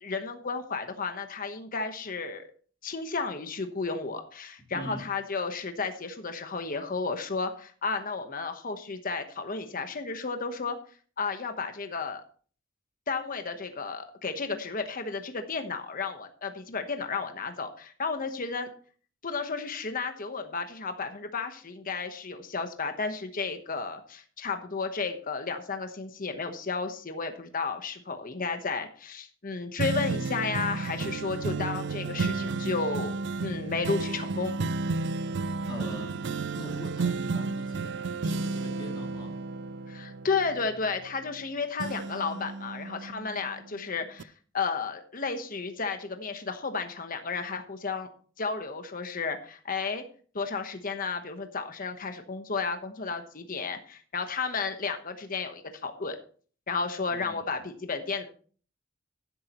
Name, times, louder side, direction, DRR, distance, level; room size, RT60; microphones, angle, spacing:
voice 1, 0.0-2.5 2.8-10.8 11.2-12.2 13.1-18.7 19.2-34.5 39.9-48.1 48.4-50.0 50.3-56.2 56.7-58.2, left 4 dB, 45° left, 7 dB, 1.1 m, -33 dB
sound 1, 29.8-41.4 41.8-43.7 44.2-44.3, right 3 dB, 60° right, 0.4 m, -32 dB
voice 2, 35.7-39.4 57.1-57.6, equal, 25° left, 0 dB, 2.5 m, -42 dB
12.0 x 11.0 x 3.0 m, 0.42 s
head